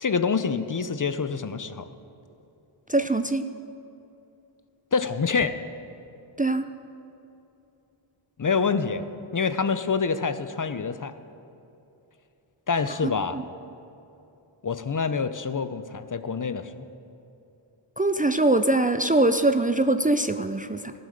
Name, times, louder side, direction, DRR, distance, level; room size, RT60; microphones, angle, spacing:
voice 1, 0.0-1.9 4.9-5.5 8.4-9.0 9.3-11.1 12.7-13.4 14.6-16.7, left 5 dB, 40° left, 11 dB, 0.7 m, -26 dB
voice 2, 2.9-3.4 6.4-6.7 13.0-13.4 18.0-20.9, right 2 dB, 15° right, 8 dB, 0.5 m, -23 dB
15.5 x 7.9 x 6.6 m, 2.8 s
cardioid pair, 45°, 49 cm